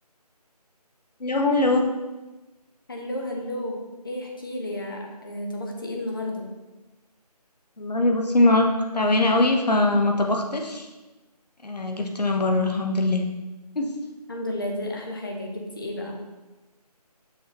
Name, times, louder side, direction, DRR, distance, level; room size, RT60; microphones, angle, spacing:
voice 1, 1.2-1.9 7.8-8.7 8.9-10.9 11.6-13.2 13.7-13.9, left 2 dB, 75° left, 2 dB, 1.1 m, -21 dB
voice 2, 2.9-3.8 4.0-6.5 14.3-16.2, left 1 dB, 35° left, 1 dB, 0.8 m, -32 dB
6.3 x 5.4 x 3.0 m, 1.1 s
figure-of-eight pair, 165°, 21 cm